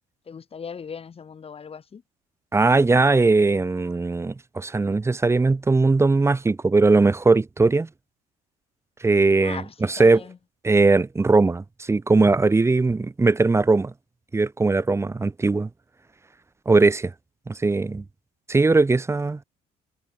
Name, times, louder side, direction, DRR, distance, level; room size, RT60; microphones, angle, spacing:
voice 1, 0.3-2.0 9.4-10.4, left 6 dB, 35° left, 4.3 m, -39 dB
voice 2, 2.5-7.9 9.0-10.2 10.6-13.9 14.3-15.7 16.7-17.1 17.5-18.0 18.5-19.4, right 3 dB, 15° right, 0.9 m, -19 dB
cardioid pair, 110°, 17 cm